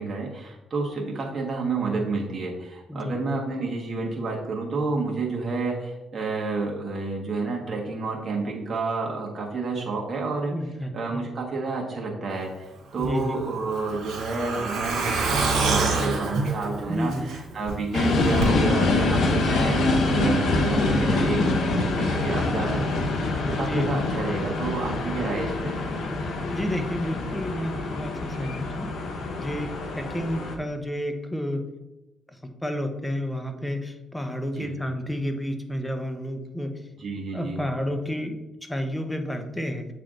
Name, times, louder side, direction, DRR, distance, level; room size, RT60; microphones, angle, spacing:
voice 1, 0.0-10.6 10.9-25.8 34.5-34.8 37.0-37.6, right 3 dB, 40° right, -2 dB, 1.4 m, -30 dB
voice 2, 10.5-11.2 13.0-13.4 16.9-17.3 23.6-24.0 26.5-28.9 29.4-31.6 32.4-36.7 37.3-38.4 38.6-39.9, equal, 5° left, 6 dB, 0.8 m, -30 dB
Truck, 13.0-17.7 18.0-18.1 18.4-18.5, right 4 dB, 75° right, 1.9 m, -26 dB
sound 1, 17.9-30.5, left 2 dB, 70° left, 0.9 m, -25 dB
7.4 x 3.3 x 3.8 m, 0.97 s
cardioid pair, 75°, 0 cm